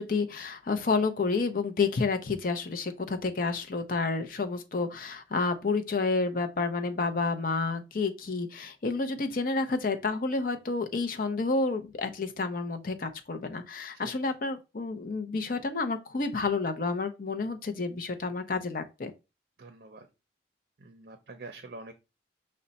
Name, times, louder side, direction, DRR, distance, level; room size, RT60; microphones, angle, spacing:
voice 1, 0.0-19.1, left 3 dB, 50° left, 0.6 m, -30 dB
voice 2, 19.6-20.1 20.8-21.9, right 3 dB, 55° right, 0.5 m, -46 dB
5.1 x 2.1 x 4.0 m
head